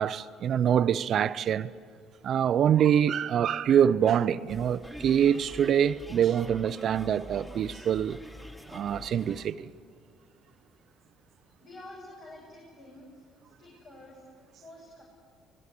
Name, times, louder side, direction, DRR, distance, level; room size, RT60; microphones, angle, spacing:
voice 1, 0.0-1.7 2.2-8.2 8.7-9.7, right 9 dB, 55° right, 0.6 m, -25 dB
sound 1, 4.5-9.5, equal, 15° left, 2.4 m, -45 dB
voice 2, 11.6-13.2 13.6-14.2 14.6-15.0, left 1 dB, 65° left, 6.9 m, -48 dB
24.5 x 21.5 x 8.4 m
supercardioid pair, 70°, 0 cm